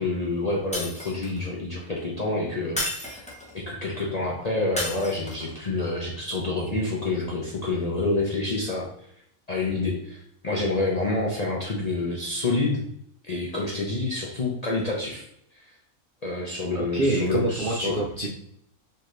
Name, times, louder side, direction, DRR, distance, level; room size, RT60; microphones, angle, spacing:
voice 1, 0.0-3.2 3.5-8.9 9.5-12.8 13.2-15.2 15.5-15.7 16.2-18.0, left 2 dB, 45° left, -4 dB, 0.5 m, -28 dB
Shatter, 0.7-1.5 2.8-3.6 4.8-5.5, left 1 dB, 5° left, 0.7 m, -32 dB
voice 2, 16.7-18.3, right 2 dB, 60° right, -2 dB, 0.5 m, -26 dB
4.3 x 2.8 x 3.2 m, 0.72 s
omnidirectional pair, 1.5 m